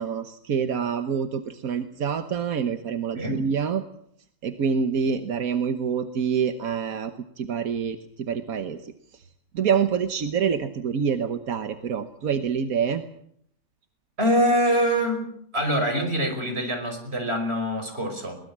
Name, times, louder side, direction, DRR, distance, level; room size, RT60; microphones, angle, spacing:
voice 1, 0.0-3.8 4.4-9.2 9.5-13.0, right 7 dB, 85° right, 8 dB, 1.6 m, -26 dB
voice 2, 14.2-15.3 15.5-18.4, equal, 45° right, 5 dB, 5.6 m, -24 dB
22.5 x 19.5 x 7.4 m, 0.70 s
omnidirectional pair, 1.4 m